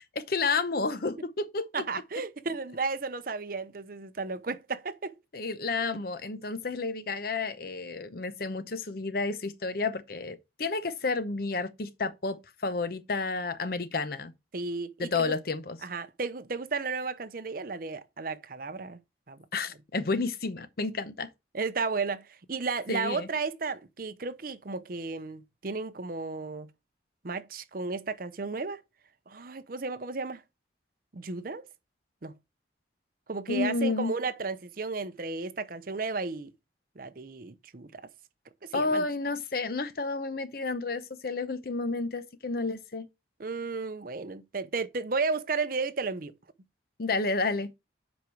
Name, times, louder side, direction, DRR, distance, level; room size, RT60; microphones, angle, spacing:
voice 1, 0.1-1.7 5.3-14.3 15.0-15.8 19.5-21.3 22.9-23.3 33.5-34.1 38.7-43.1 47.0-47.8, left 3 dB, 50° left, 0.7 m, -31 dB
voice 2, 1.7-5.1 14.5-15.3 15.8-19.0 19.3-19.4 21.5-26.7 27.2-28.8 29.3-30.4 31.1-31.7 32.2-32.3 33.3-36.5 37.0-38.1 38.6-39.0 43.4-46.3, right 4 dB, 50° right, 0.7 m, -33 dB
7.8 x 5.2 x 4.6 m
head